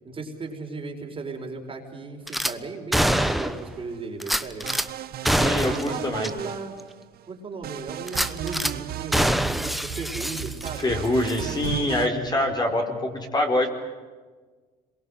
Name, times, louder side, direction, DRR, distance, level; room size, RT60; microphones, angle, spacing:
voice 1, 0.0-4.7 5.4-6.7 7.3-11.0, right 3 dB, 30° right, 2 dB, 4.8 m, -36 dB
Gunshot gunfire / Glass, 2.3-2.5 2.9-3.7 4.2-4.9 5.3-5.9 6.2-6.3 6.8-6.9 8.1-8.7 9.1-10.9 11.2-11.4, equal, ahead, 1.1 m, -25 dB
sound 1, 3.1-4.0 4.6-7.2 7.6-12.1, right 12 dB, 65° right, 1.3 m, -35 dB
voice 2, 5.3-6.3 10.8-13.7, left 1 dB, 25° left, 3 dB, 4.6 m, -25 dB
26.5 x 23.0 x 7.9 m, 1.4 s
cardioid pair, 110°, 17 cm